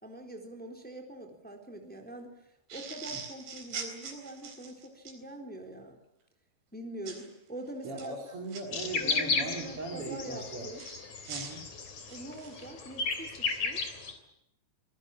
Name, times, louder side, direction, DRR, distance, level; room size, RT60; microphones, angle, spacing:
voice 1, 0.0-2.4 2.7-6.0 6.7-8.2 9.0-10.8 12.1-13.8, right 1 dB, ahead, 4 dB, 3.5 m, -44 dB
sound 1, 2.7-5.2 7.1-7.3 7.8-8.6 10.8-12.6, right 6 dB, 85° right, 6.0 m, -42 dB
voice 2, 7.8-10.7 11.3-11.6, right 2 dB, 35° right, 1 dB, 3.7 m, -39 dB
sound 2, 8.7-14.1, left 4 dB, 50° left, 4.4 m, -34 dB
27.0 x 20.5 x 7.4 m, 0.82 s
omnidirectional pair, 4.5 m